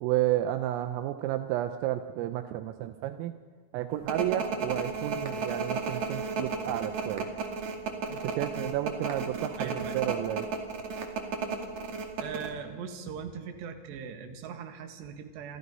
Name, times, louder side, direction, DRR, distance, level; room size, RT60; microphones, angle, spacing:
voice 1, 0.0-3.3 3.7-7.3 8.1-10.5, right 13 dB, 80° right, 8 dB, 3.4 m, -31 dB
sound 1, 4.1-12.5, right 4 dB, 45° right, 2.9 m, -33 dB
voice 2, 9.6-10.0 12.2-15.6, right 7 dB, 65° right, 5 dB, 3.7 m, -40 dB
28.5 x 25.5 x 5.5 m, 1.5 s
omnidirectional pair, 5.9 m